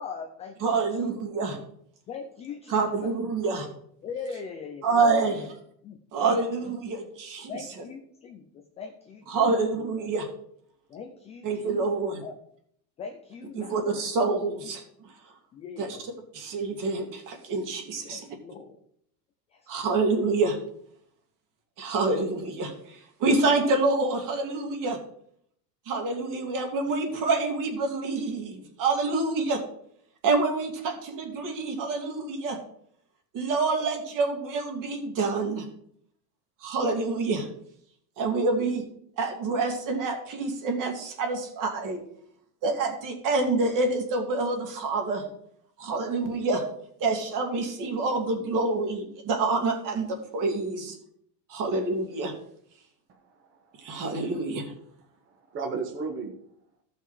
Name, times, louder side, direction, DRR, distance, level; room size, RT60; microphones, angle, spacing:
voice 1, 0.0-1.1 2.1-3.1 4.0-5.4 5.8-6.3 7.5-9.5 10.9-11.8 12.2-12.4 13.0-13.8 14.6-14.7 15.5-16.1 18.0-18.8 19.5-19.9, left 5 dB, 15° left, 4 dB, 0.3 m, -40 dB
voice 2, 0.6-1.6 2.7-3.7 4.8-5.4 6.1-7.5 9.3-10.3 11.4-12.2 13.6-15.1 15.8-16.0 16.3-18.3 19.7-20.6 21.8-25.0 25.9-29.6 30.2-32.6 33.3-35.7 36.6-37.5 38.2-38.8 39.2-42.0 42.6-45.2 45.8-46.6 47.0-51.0 51.5-52.3 53.8-54.7, right 3 dB, 40° right, 4 dB, 2.3 m, -27 dB
voice 3, 53.1-54.0 55.3-56.3, right 4 dB, 25° right, 3 dB, 1.2 m, -36 dB
15.0 x 5.6 x 4.8 m, 0.69 s
supercardioid pair, 155°, 49 cm